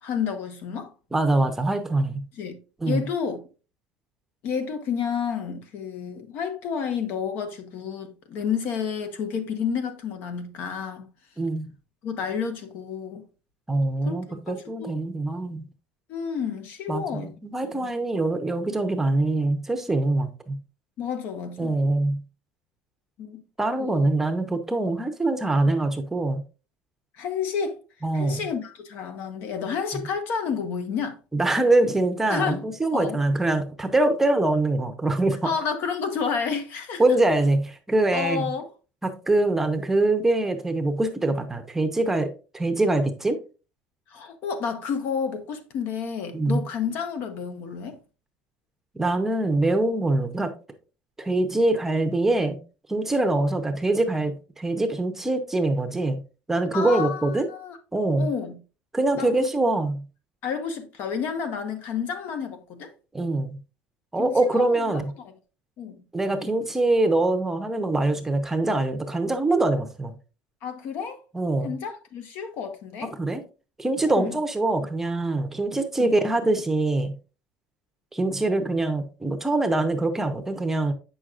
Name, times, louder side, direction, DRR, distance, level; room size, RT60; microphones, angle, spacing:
voice 1, 0.0-0.9 2.4-2.6 2.9-3.4 4.4-11.1 12.0-13.2 14.0-14.4 14.6-15.0 16.1-17.3 17.7-17.9 21.0-21.8 23.2-23.4 23.8-24.1 27.2-27.8 28.1-31.2 32.3-32.6 32.9-33.2 35.4-37.0 38.1-38.7 44.1-48.0 56.7-57.8 58.2-58.6 59.2-59.3 60.4-62.9 64.2-65.3 65.8-66.0 70.6-71.2 71.6-73.1 74.0-74.4 76.0-76.2, left 6 dB, 60° left, 1.2 m, -30 dB
voice 2, 1.1-2.2 2.8-3.0 11.4-11.7 13.7-15.7 16.9-20.6 21.6-22.2 23.6-26.4 28.0-28.5 31.3-35.5 37.0-38.4 39.0-43.4 46.3-46.6 48.9-50.5 51.2-52.6 52.9-56.2 56.5-57.5 57.9-58.3 58.9-60.0 63.1-63.6 64.1-65.1 66.1-70.2 71.3-71.7 73.0-73.4 73.8-77.1 78.1-80.9, right 2 dB, 10° right, 0.8 m, -24 dB
8.0 x 6.2 x 2.5 m
cardioid pair, 140°, 4 cm